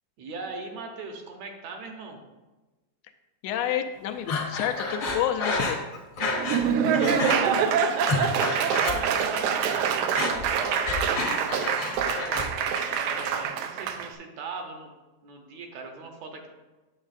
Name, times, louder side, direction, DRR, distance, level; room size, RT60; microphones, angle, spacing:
voice 1, 0.2-2.2 6.3-8.4 8.8-11.4 12.8-14.9 15.2-16.5, right 4 dB, 75° right, 3 dB, 2.0 m, -40 dB
voice 2, 3.4-5.9, left 10 dB, 80° left, 6 dB, 1.6 m, -29 dB
Breathing, 4.3-6.7 6.9-7.4 7.8-9.4 9.6-12.5 12.8-13.4, left 3 dB, 55° left, 1.2 m, -30 dB
Laughter / Applause, 6.2-14.1, right 7 dB, 90° right, 2.0 m, -25 dB
8.9 x 7.1 x 2.5 m, 1.1 s
omnidirectional pair, 3.4 m